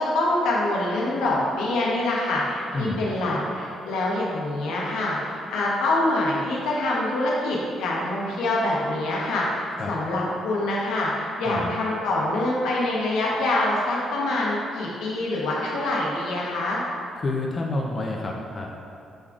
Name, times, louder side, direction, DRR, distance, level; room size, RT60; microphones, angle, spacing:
voice 1, 0.0-16.8, left 2 dB, 90° left, -4 dB, 0.9 m, -25 dB
voice 2, 2.7-3.0 9.8-9.9 11.5-11.7 17.2-18.7, left 2 dB, 35° left, -1 dB, 0.5 m, -28 dB
6.3 x 3.6 x 2.4 m, 2.6 s
cardioid pair, 90°, 0 cm